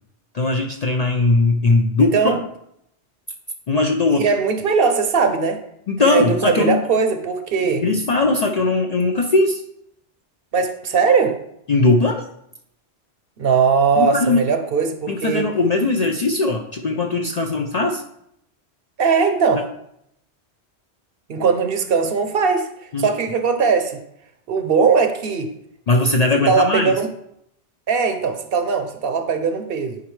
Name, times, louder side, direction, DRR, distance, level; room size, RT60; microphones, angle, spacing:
voice 1, 0.3-2.4 3.7-4.2 5.9-6.8 7.6-9.6 11.7-12.2 14.0-14.5 15.1-18.0 19.5-19.6 22.9-23.1 25.9-26.9, left 3 dB, 55° left, 3 dB, 0.4 m, -19 dB
voice 2, 2.0-2.4 4.2-5.6 6.0-7.8 10.5-11.4 13.4-15.5 19.0-19.6 21.3-22.7 23.0-24.0 24.5-25.5 26.5-27.1 27.9-30.0, right 5 dB, 60° right, 8 dB, 0.8 m, -19 dB
9.5 x 4.2 x 3.1 m, 0.76 s
omnidirectional pair, 1.2 m